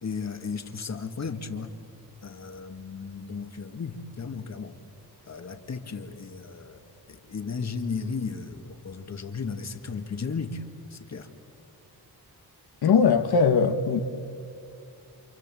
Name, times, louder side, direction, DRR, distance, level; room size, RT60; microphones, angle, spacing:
voice 1, 0.0-1.7 2.2-4.8 5.3-10.6 10.9-11.3, left 5 dB, 45° left, 2.0 m, -35 dB
voice 2, 12.8-14.0, left 5 dB, 70° left, 1.6 m, -20 dB
28.5 x 27.5 x 7.7 m
wide cardioid pair, 120°, 39 cm